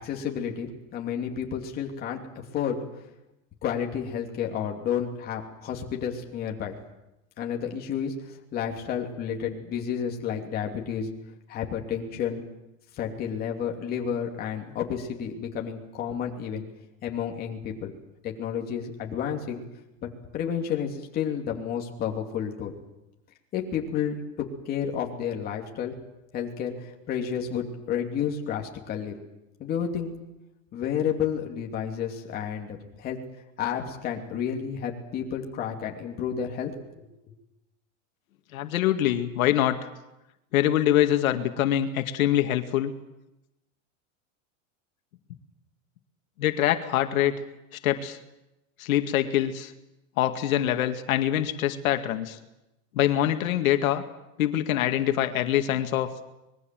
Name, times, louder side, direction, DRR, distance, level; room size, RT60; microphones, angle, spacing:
voice 1, 0.0-2.9 3.6-6.7 7.4-11.1 11.5-12.4 12.9-16.6 17.0-17.9 18.2-19.6 20.0-20.1 20.3-22.7 23.5-24.2 24.7-25.9 26.3-29.1 29.6-30.1 30.7-33.2 33.6-36.7 37.0-37.1, left 8 dB, 20° left, 1 dB, 2.8 m, -31 dB
voice 2, 38.5-39.9 40.5-42.9 46.4-47.3 47.8-48.2 48.8-49.7 50.2-52.4 52.9-54.0 54.4-56.1, left 12 dB, 85° left, 7 dB, 2.2 m, -24 dB
25.5 x 21.5 x 7.7 m, 0.94 s
supercardioid pair, 180°, 40 cm